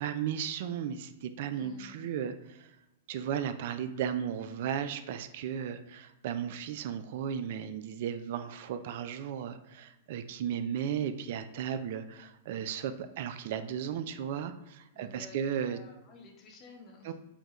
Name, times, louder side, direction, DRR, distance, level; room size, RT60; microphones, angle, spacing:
voice 1, 0.0-2.7 3.1-15.8 17.0-17.1, right 8 dB, 60° right, 10 dB, 0.3 m, -35 dB
voice 2, 1.5-2.1 14.9-15.4 15.6-17.1, left 3 dB, 35° left, 2 dB, 0.9 m, -52 dB
5.0 x 2.2 x 3.0 m, 0.96 s
hypercardioid pair, 115°, 0 cm